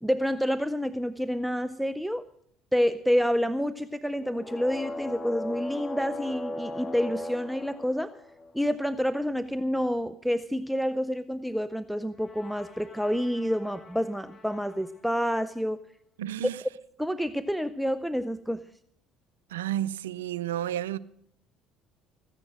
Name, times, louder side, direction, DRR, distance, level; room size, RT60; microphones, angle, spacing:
voice 1, 0.0-2.3 2.7-8.1 8.5-15.8 17.0-18.6, equal, ahead, 0.5 m, -28 dB
sound 1, 4.2-8.8 12.1-15.0, left 1 dB, 25° left, 2.1 m, -39 dB
voice 2, 16.2-16.6 19.5-21.0, right 12 dB, 90° right, 0.4 m, -31 dB
14.5 x 9.9 x 6.3 m
hypercardioid pair, 65°, 0 cm